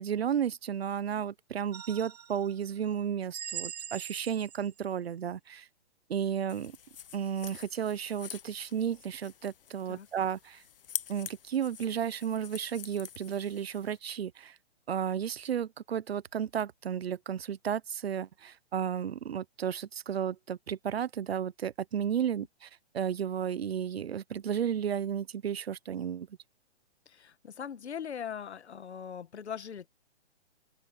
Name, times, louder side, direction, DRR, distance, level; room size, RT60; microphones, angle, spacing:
voice 1, 0.0-5.7 6.1-6.8 7.1-10.6 11.1-14.5 14.9-26.3, right 8 dB, 60° right, 1.0 m, -33 dB
sound 1, 1.7-2.5 3.3-4.8, right 8 dB, 35° right, 0.6 m, -41 dB
sound 2, 6.5-14.0, left 9 dB, 55° left, 0.9 m, -45 dB
voice 2, 27.1-29.9, left 8 dB, 70° left, 1.8 m, -40 dB
open air
hypercardioid pair, 170°, 34 cm